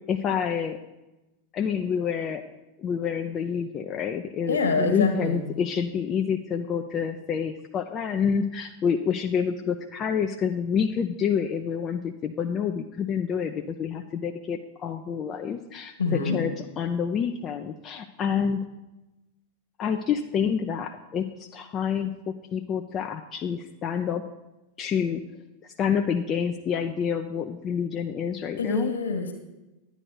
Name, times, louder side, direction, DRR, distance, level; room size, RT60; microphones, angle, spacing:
voice 1, 0.1-0.8 1.5-2.4 2.8-18.6 19.8-24.2 24.8-25.2 25.8-28.9, left 7 dB, 30° left, 5 dB, 0.5 m, -28 dB
voice 2, 4.5-5.4 16.0-16.4 28.6-29.3, left 4 dB, 70° left, 5 dB, 1.6 m, -25 dB
11.0 x 9.3 x 4.1 m, 1.0 s
figure-of-eight pair, 90°, 0 cm